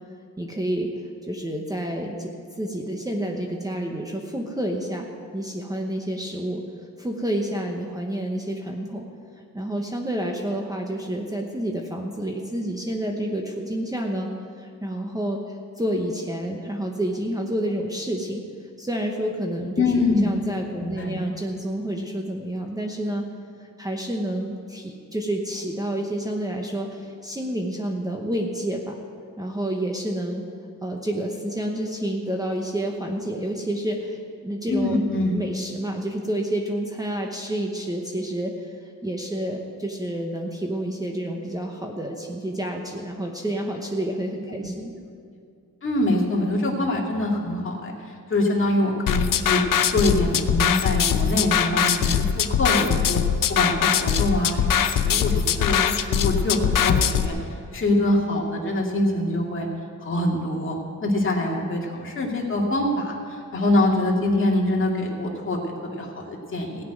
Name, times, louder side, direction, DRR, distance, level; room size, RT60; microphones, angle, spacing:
voice 1, 0.4-0.9 1.2-2.3 2.6-5.1 5.3-6.6 7.0-9.1 9.5-14.3 14.6-18.4 18.8-19.8 20.2-23.2 23.6-29.0 29.4-30.4 30.8-35.0 35.3-44.9, right 1 dB, 10° right, 1 dB, 0.9 m, -29 dB
voice 2, 19.8-20.3 20.8-21.2 34.7-35.4 45.8-49.6 49.9-53.2 53.5-57.4 57.7-59.7 60.0-66.8, left 1 dB, 40° left, -1 dB, 2.3 m, -24 dB
sound 1, 49.1-57.3, left 8 dB, 85° left, 0.7 m, -22 dB
17.0 x 6.0 x 9.3 m, 2.3 s
wide cardioid pair, 145°, 32 cm